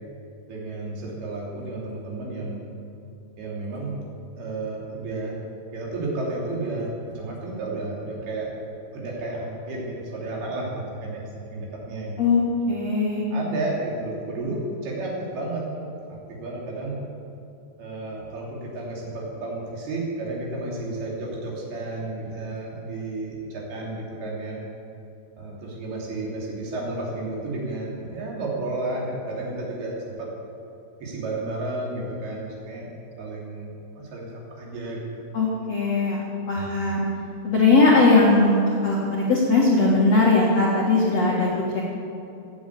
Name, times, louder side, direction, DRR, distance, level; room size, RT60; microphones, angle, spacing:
voice 1, 0.5-2.6 3.4-4.0 4.4-5.4 5.7-8.5 8.9-12.4 13.3-15.7 16.1-17.0 17.8-24.6 25.4-30.3 31.0-32.9 33.2-35.1 36.6-36.8, right 2 dB, 55° right, -4 dB, 4.7 m, -32 dB
voice 2, 12.7-13.2 35.3-36.2 36.5-37.0 37.4-41.8, left 3 dB, 55° left, -4 dB, 1.9 m, -19 dB
15.5 x 8.4 x 8.6 m, 2.8 s
omnidirectional pair, 5.6 m